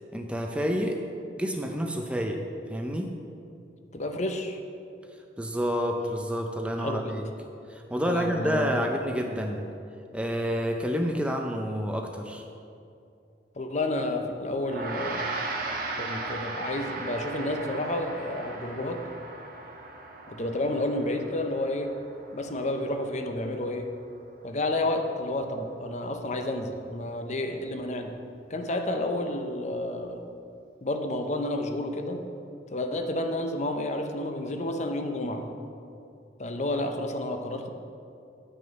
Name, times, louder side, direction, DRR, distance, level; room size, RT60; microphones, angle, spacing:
voice 1, 0.1-1.0 1.4-2.4 2.7-3.1 5.4-7.3 7.7-9.7 10.1-12.4, equal, 5° right, 3 dB, 0.5 m, -29 dB
voice 2, 3.9-4.6 6.8-7.2 8.1-8.8 13.6-15.2 16.0-19.0 20.3-21.9 22.3-23.9 24.4-28.2 28.5-30.2 30.8-32.2 32.7-35.5 36.4-37.7, left 1 dB, 40° left, 5 dB, 0.6 m, -30 dB
Gong, 14.6-24.2, right 3 dB, 50° right, 1.1 m, -37 dB
8.9 x 6.4 x 5.3 m, 2.6 s
head